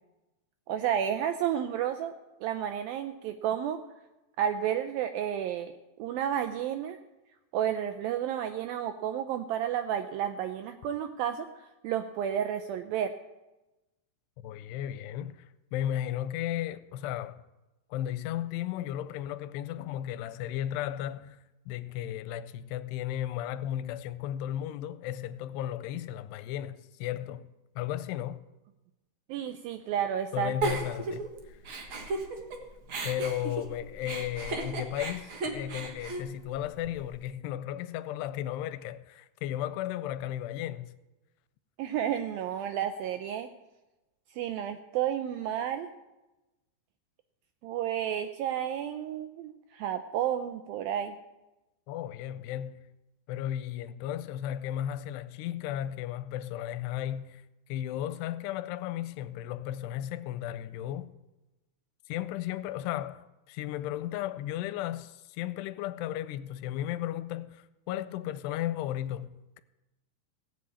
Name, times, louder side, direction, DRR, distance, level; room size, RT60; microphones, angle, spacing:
voice 1, 0.7-2.1 2.4-3.8 4.4-5.7 6.0-7.0 7.5-11.5 11.8-13.1 29.3-30.5 41.8-43.5 44.3-45.9 47.6-51.2, right 10 dB, 80° right, 2.1 m, -31 dB
voice 2, 14.4-17.4 17.9-27.5 27.8-28.4 30.3-31.6 33.0-40.9 51.9-52.9 53.3-57.4 57.7-61.1 62.1-69.6, left 12 dB, 85° left, 2.7 m, -35 dB
Giggle, 30.6-32.6 32.9-37.1, right 3 dB, 60° right, 1.3 m, -35 dB
17.0 x 7.6 x 8.5 m
omnidirectional pair, 4.7 m